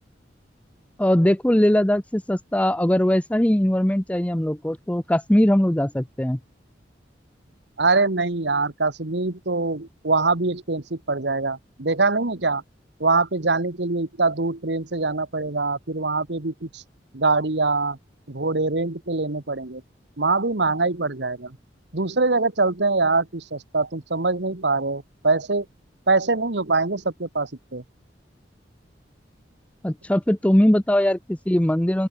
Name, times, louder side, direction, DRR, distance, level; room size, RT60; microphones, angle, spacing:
voice 1, 1.0-6.4 29.8-32.1, left 1 dB, 5° left, 0.6 m, -20 dB
voice 2, 7.8-12.6 13.0-16.8 17.1-18.0 18.3-19.8 20.2-21.6 21.9-25.6 26.1-27.8, right 3 dB, 70° right, 1.5 m, -23 dB
open air
head